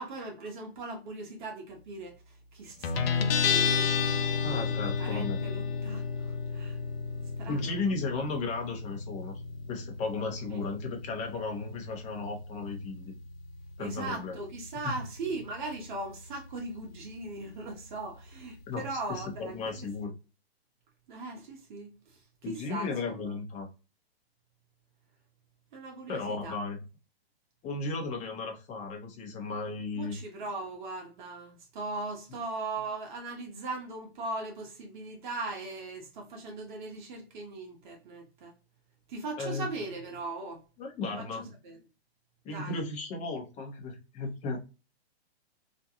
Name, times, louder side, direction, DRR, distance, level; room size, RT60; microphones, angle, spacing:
voice 1, 0.0-3.9 4.4-6.8 7.4-8.0 10.5-10.6 13.8-19.9 21.1-23.3 25.7-26.6 29.9-38.5 39.1-40.6 41.1-41.8 42.5-42.8, right 3 dB, 50° right, 0.8 m, -39 dB
Guitar, 2.8-20.0, left 5 dB, 65° left, 0.5 m, -34 dB
voice 2, 4.4-5.4 7.5-9.4 9.7-13.1 13.8-14.4 18.7-20.1 22.4-23.7 26.1-26.8 27.6-30.2 39.4-39.7 40.8-41.5 42.4-44.6, left 3 dB, 20° left, 0.7 m, -35 dB
2.5 x 2.2 x 2.8 m
hypercardioid pair, 135°, 32 cm